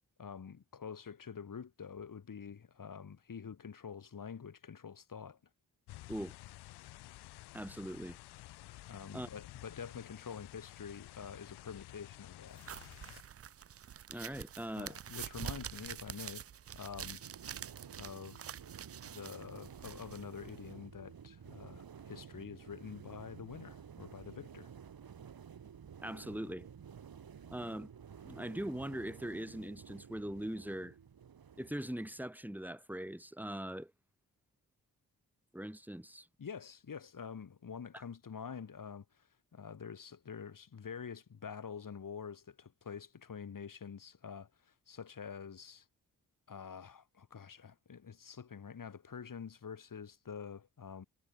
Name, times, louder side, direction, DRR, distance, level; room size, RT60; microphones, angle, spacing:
voice 1, 0.2-5.4 8.9-12.6 14.8-16.4 16.7-17.2 18.0-18.5 19.1-24.7 36.4-39.3 39.5-45.8 46.5-51.0, left 6 dB, 55° left, 2.7 m, -47 dB
sound 1, 5.9-13.2, left 17 dB, 85° left, 0.6 m, -52 dB
voice 2, 7.5-8.2 9.1-9.3 14.1-15.0 26.0-26.7 27.5-27.9 28.2-30.9 31.6-33.9 35.5-36.3, right 1 dB, 5° right, 2.6 m, -41 dB
sound 2, 12.6-20.7, right 9 dB, 40° right, 0.5 m, -47 dB
sound 3, 17.2-32.3, right 7 dB, 65° right, 4.0 m, -52 dB
supercardioid pair, 45°, 38 cm